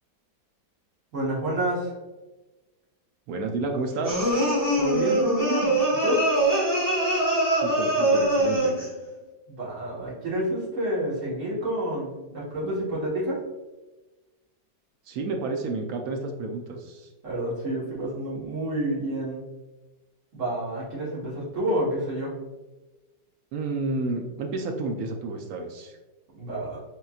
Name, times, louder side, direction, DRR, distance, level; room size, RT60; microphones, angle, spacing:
voice 1, 1.1-1.9 4.8-5.7 6.0-6.3 9.5-13.4 17.2-19.4 20.3-22.4 26.4-26.8, right 1 dB, 45° right, -6 dB, 1.6 m, -28 dB
voice 2, 3.3-4.3 7.5-8.8 15.1-17.1 23.5-26.0, right 3 dB, 70° right, 3 dB, 0.9 m, -31 dB
sound 1, 4.0-8.9, right 1 dB, 15° right, 1.1 m, -23 dB
4.1 x 3.8 x 2.3 m, 1.1 s
omnidirectional pair, 1.9 m